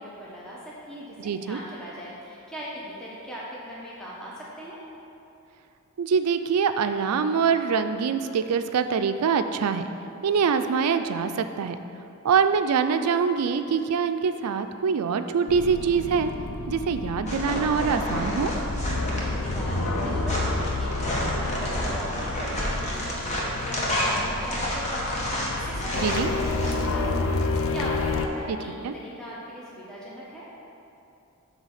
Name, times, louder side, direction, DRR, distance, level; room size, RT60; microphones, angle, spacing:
voice 1, 0.0-4.8 19.1-30.4, equal, 5° left, -7 dB, 0.8 m, -39 dB
voice 2, 1.2-1.6 6.0-9.8 10.2-11.8 12.2-16.3 16.7-18.5 26.0-26.3 28.5-28.6 28.8-28.9, right 6 dB, 90° right, 9 dB, 0.4 m, -24 dB
sound 1, 15.5-28.3, left 3 dB, 70° left, 0.5 m, -30 dB
sound 2, 17.3-26.7, equal, 30° left, 1.1 m, -30 dB
8.1 x 3.4 x 6.4 m, 2.8 s
head